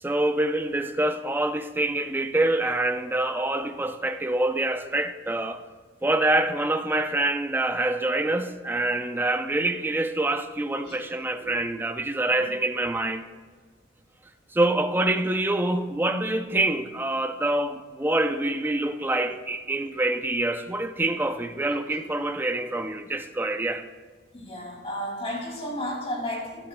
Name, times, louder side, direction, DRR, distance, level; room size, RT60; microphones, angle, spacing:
voice 1, 0.0-5.6 6.0-13.3 14.5-23.8, right 2 dB, 10° right, 0.5 m, -26 dB
voice 2, 24.3-26.7, equal, 35° left, 2.6 m, -34 dB
13.0 x 12.5 x 2.3 m
head